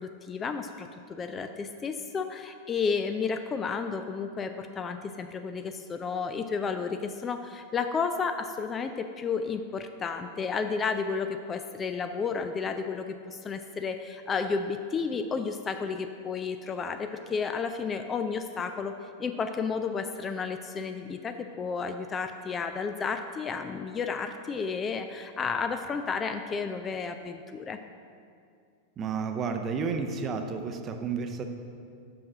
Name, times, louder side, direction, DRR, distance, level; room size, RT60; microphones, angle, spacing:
voice 1, 0.0-27.8, left 5 dB, 20° left, 7 dB, 0.3 m, -32 dB
voice 2, 29.0-31.4, right 5 dB, 30° right, 6 dB, 0.6 m, -31 dB
5.9 x 5.3 x 6.2 m, 2.3 s
figure-of-eight pair, 90°, 0 cm